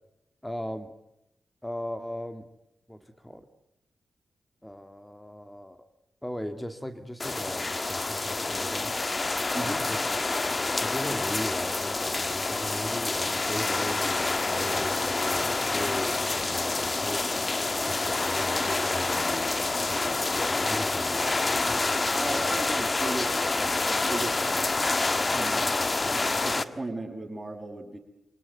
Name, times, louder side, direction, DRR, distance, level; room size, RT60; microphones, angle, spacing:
voice 1, 0.4-0.9 1.6-2.5 2.9-3.4 4.6-5.8 6.2-9.0 9.6-10.0 10.8-17.3 17.9-21.6, equal, 10° left, 7 dB, 2.6 m, -38 dB
sound 1, 7.2-26.6, left 3 dB, 40° left, 1.5 m, -27 dB
voice 2, 22.1-24.4 25.3-25.8 26.4-28.0, right 2 dB, 25° right, 2 dB, 8.0 m, -36 dB
28.0 x 18.0 x 9.5 m, 0.86 s
supercardioid pair, 50°, 0 cm